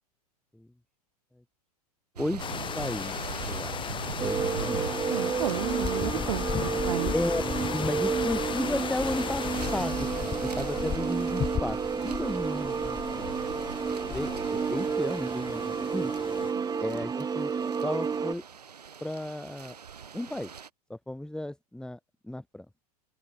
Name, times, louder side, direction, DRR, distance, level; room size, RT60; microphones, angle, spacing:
sound 1, 2.2-20.7, right 7 dB, 85° right, 4.0 m, -43 dB
sound 2, 2.4-16.5, left 8 dB, 25° left, 3.9 m, -35 dB
voice 1, 2.7-4.9 7.1-7.4 7.7-10.1 10.4-13.4 14.1-16.1 16.8-17.5 17.8-18.4 19.0-19.8 20.1-20.5 20.9-22.7, left 1 dB, 5° left, 5.4 m, -34 dB
sound 3, 4.2-18.3, right 6 dB, 20° right, 5.3 m, -31 dB
voice 2, 5.1-7.1 16.5-16.7, right 14 dB, 65° right, 3.8 m, -33 dB
open air
hypercardioid pair, 100°, 20 cm